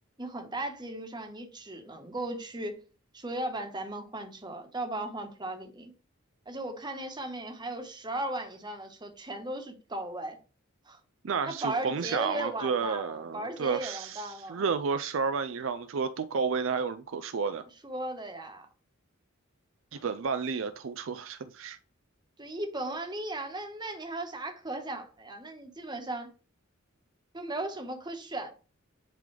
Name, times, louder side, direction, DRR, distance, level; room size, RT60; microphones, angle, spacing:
voice 1, 0.2-2.7 3.1-5.9 6.5-10.4 10.8-11.0 11.4-14.6 17.8-18.7 22.4-26.3 27.3-28.5, right 1 dB, 20° right, 1.2 m, -36 dB
voice 2, 11.2-17.7 19.9-21.8, right 5 dB, 65° right, 0.4 m, -31 dB
10.5 x 3.8 x 3.4 m
head